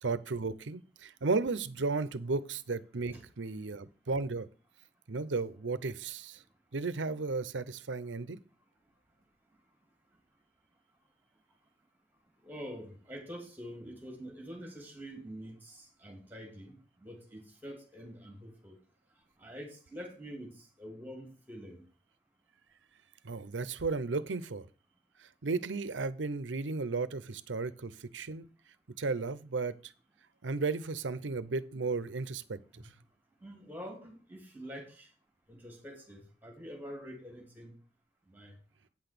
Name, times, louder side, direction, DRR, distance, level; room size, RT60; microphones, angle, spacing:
voice 1, 0.0-4.5 5.1-6.4 6.7-8.4 23.2-24.6 25.4-28.4 29.0-29.8 30.4-32.8, right 3 dB, 90° right, 0.7 m, -34 dB
voice 2, 12.4-18.8 19.4-21.8 32.7-32.9 33.4-35.1 35.5-37.7 38.3-38.6, equal, 10° right, 2.8 m, -46 dB
8.9 x 6.0 x 6.8 m
head